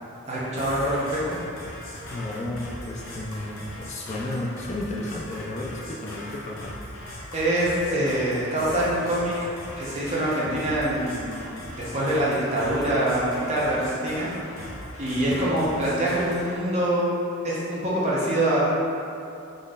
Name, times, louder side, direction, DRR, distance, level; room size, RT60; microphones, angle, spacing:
voice 1, 0.3-1.4 7.3-9.4 9.8-14.3 15.0-17.1 17.4-18.6, right 1 dB, 30° right, -7 dB, 0.8 m, -25 dB
sound 1, 0.6-16.6, left 1 dB, 60° left, 0.8 m, -39 dB
voice 2, 2.1-6.7, left 1 dB, 30° left, -3 dB, 0.3 m, -33 dB
3.9 x 3.1 x 3.7 m, 2.7 s
head